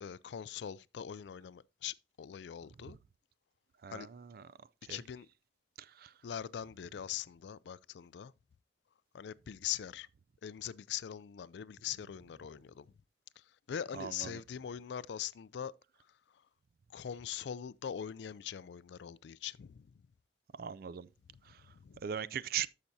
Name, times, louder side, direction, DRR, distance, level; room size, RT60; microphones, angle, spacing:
voice 1, 0.0-3.0 3.9-4.1 4.9-5.3 6.2-8.3 9.1-10.1 10.4-12.9 13.4-15.7 16.9-19.9 21.7-22.0, left 9 dB, 65° left, 0.3 m, -42 dB
voice 2, 3.8-4.4 4.8-5.0 5.8-6.1 13.9-14.4 20.6-21.1 21.5-21.6 22.0-22.7, right 9 dB, 50° right, 0.4 m, -40 dB
13.0 x 5.8 x 2.7 m
head